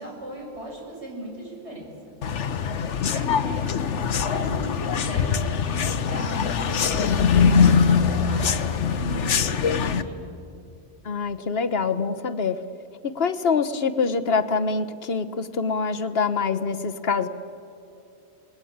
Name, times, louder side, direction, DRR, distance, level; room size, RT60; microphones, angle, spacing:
voice 1, 0.0-1.9 3.1-7.1 7.5-10.3, right 1 dB, 70° right, -1 dB, 6.8 m, -38 dB
sound 1, 2.2-10.0, left 6 dB, 85° left, 1.3 m, -22 dB
voice 2, 11.0-12.6 13.0-17.3, left 5 dB, 60° left, 12 dB, 1.3 m, -25 dB
29.5 x 20.5 x 8.8 m, 2.6 s
omnidirectional pair, 1.2 m